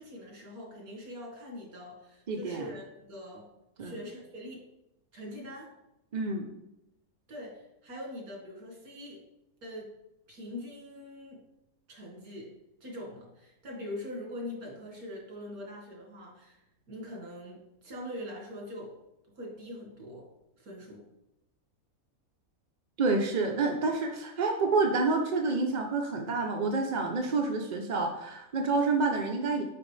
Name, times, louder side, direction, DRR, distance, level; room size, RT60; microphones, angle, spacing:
voice 1, 0.0-3.5 3.8-4.6 5.1-5.7 7.3-9.2 9.6-9.9 10.3-11.4 11.9-12.5 12.8-16.6 16.9-19.0 19.3-20.3 20.6-21.0, left 1 dB, 80° right, -1 dB, 2.1 m, -43 dB
voice 2, 2.3-2.7 3.8-3.9 6.1-6.5 23.0-29.6, right 3 dB, 60° right, 3 dB, 0.4 m, -28 dB
5.8 x 5.2 x 3.2 m, 0.86 s
omnidirectional pair, 1.5 m